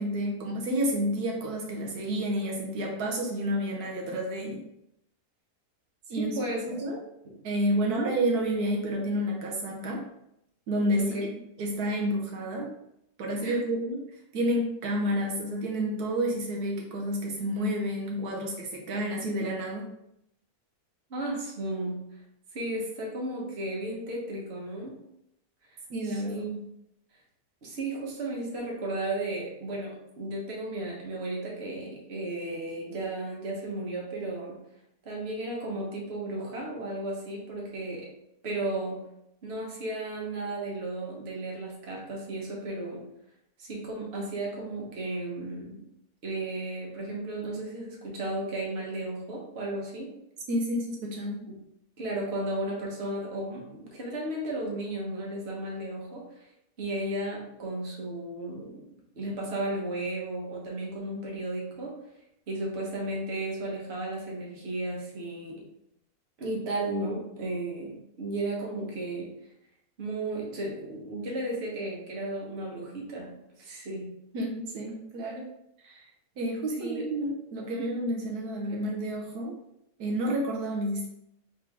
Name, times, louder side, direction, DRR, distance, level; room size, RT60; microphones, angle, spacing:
voice 1, 0.0-4.6 6.1-6.3 6.7-7.0 7.4-10.0 10.7-11.1 11.6-12.7 13.2-14.0 14.3-19.9 25.9-26.4 50.5-51.4 74.3-75.5 75.8-76.1 76.4-79.6 80.0-81.1, equal, 80° right, -1 dB, 1.3 m, -30 dB
voice 2, 6.2-6.7 7.2-7.3 7.8-8.1 11.0-11.3 13.4-13.6 21.1-22.0 22.5-25.0 26.0-26.6 27.6-34.6 35.0-38.1 38.4-39.0 39.4-43.1 43.6-45.8 46.2-50.1 51.5-51.6 52.0-56.5 56.8-58.8 59.1-61.9 62.5-65.6 66.4-69.3 70.0-73.3 73.6-74.1 76.8-77.1 77.7-77.8, right 2 dB, 45° right, -2 dB, 1.2 m, -34 dB
3.8 x 3.3 x 3.4 m, 0.81 s
omnidirectional pair, 1.6 m